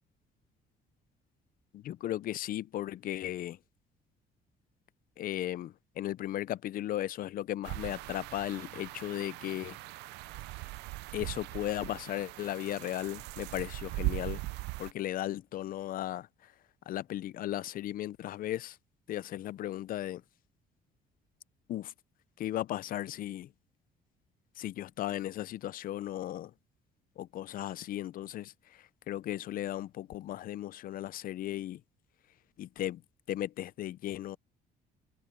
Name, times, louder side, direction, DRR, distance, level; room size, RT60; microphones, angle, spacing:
voice 1, 1.7-3.6 5.2-9.8 11.1-14.4 14.8-16.5 16.9-18.8 19.1-20.2 21.7-21.9 22.4-23.5 24.6-26.5 27.2-31.8 32.6-33.0 33.3-34.4, left 13 dB, 55° left, 0.5 m, -36 dB
sound 1, 7.6-14.9, right 20 dB, 85° right, 0.5 m, -39 dB
cardioid pair, 110°, 17 cm